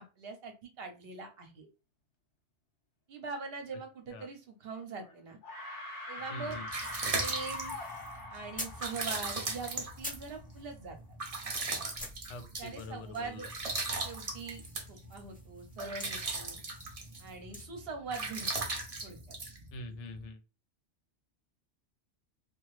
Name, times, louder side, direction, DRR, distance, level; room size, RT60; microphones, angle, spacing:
voice 1, 0.0-1.7 3.1-5.4 6.1-6.6 7.1-7.8 8.3-11.0 12.6-13.5 14.0-14.6 14.9-16.6 17.2-18.5 19.0-19.4, right 4 dB, 60° right, 5 dB, 0.9 m, -42 dB
sound 1, 4.8-5.1 5.4-10.0, left 2 dB, 55° left, 1.1 m, -43 dB
voice 2, 6.3-6.7 12.3-13.5 19.7-20.4, left 2 dB, 85° left, 9 dB, 0.9 m, -44 dB
sound 2, 6.3-20.2, right 3 dB, 35° right, 0.7 m, -38 dB
sound 3, 8.2-11.1 11.5-11.6 11.7-17.7, left 1 dB, 15° left, 0.3 m, -49 dB
2.9 x 2.4 x 3.0 m, 0.30 s
omnidirectional pair, 1.2 m